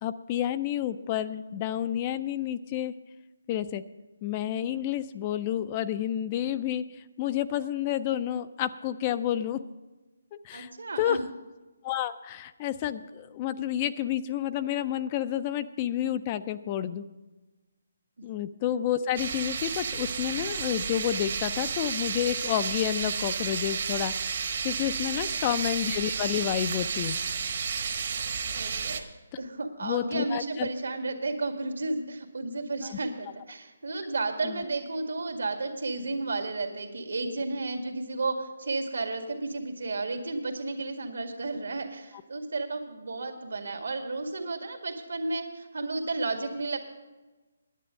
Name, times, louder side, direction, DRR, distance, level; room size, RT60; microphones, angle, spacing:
voice 1, 0.0-2.9 3.5-3.8 4.2-9.6 10.3-10.7 11.0-11.2 11.8-17.1 18.2-27.2 29.8-30.7 32.8-33.0 34.4-34.6, left 11 dB, 20° left, 13 dB, 0.3 m, -30 dB
voice 2, 10.5-11.2 18.2-18.3 25.3-25.4 28.5-29.0 29.4-46.8, right 3 dB, 80° right, 5 dB, 1.9 m, -32 dB
sound 1, 19.2-29.0, right 6 dB, 45° right, 1.0 m, -32 dB
10.0 x 8.4 x 7.6 m, 1.2 s
hypercardioid pair, 170°, 0 cm